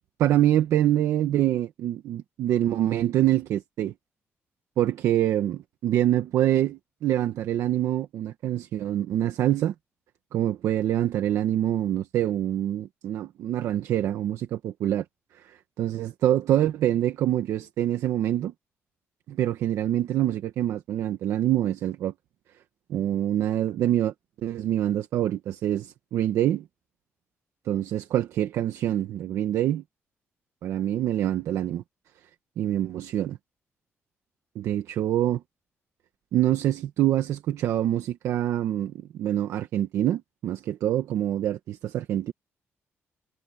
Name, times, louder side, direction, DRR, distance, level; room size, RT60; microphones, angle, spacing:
voice 1, 0.2-3.9 4.8-9.7 10.3-15.0 15.3-18.5 19.3-22.1 22.9-26.7 27.6-29.8 30.6-31.8 32.6-33.4 34.5-35.4 36.3-42.3, right 12 dB, 90° right, 1.3 m, -25 dB
cardioid pair, 145°, 5 cm